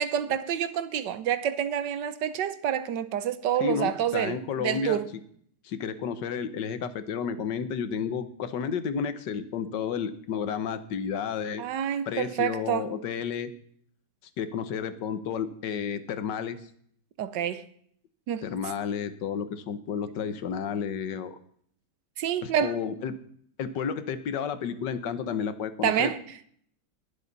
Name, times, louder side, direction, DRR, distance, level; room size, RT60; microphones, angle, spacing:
voice 1, 0.0-5.1 11.6-12.9 17.2-17.6 18.3-18.5 22.2-22.7 25.8-26.2, right 9 dB, 85° right, 1.5 m, -28 dB
voice 2, 3.6-5.0 5.6-11.6 12.1-13.5 14.4-16.6 18.4-21.4 22.4-23.1 23.6-26.1, left 7 dB, 80° left, 1.6 m, -31 dB
21.0 x 7.4 x 4.0 m
omnidirectional pair, 1.9 m